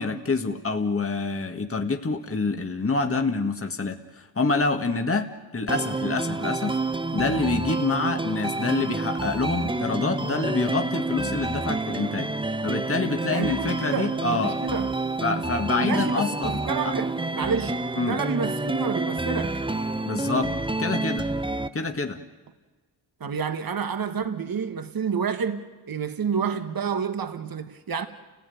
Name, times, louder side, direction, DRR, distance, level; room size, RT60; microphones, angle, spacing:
voice 1, 0.0-6.8 7.1-12.3 12.6-14.6 15.2-16.9 18.0-18.2 20.1-21.3 21.7-22.2, left 3 dB, 30° left, 1.9 m, -27 dB
sound 1, 5.7-21.7, right 2 dB, 10° right, 0.9 m, -28 dB
voice 2, 13.3-14.9 15.8-19.6 23.2-28.1, right 6 dB, 55° right, 1.6 m, -29 dB
29.5 x 16.5 x 9.4 m
cardioid pair, 65°, 42 cm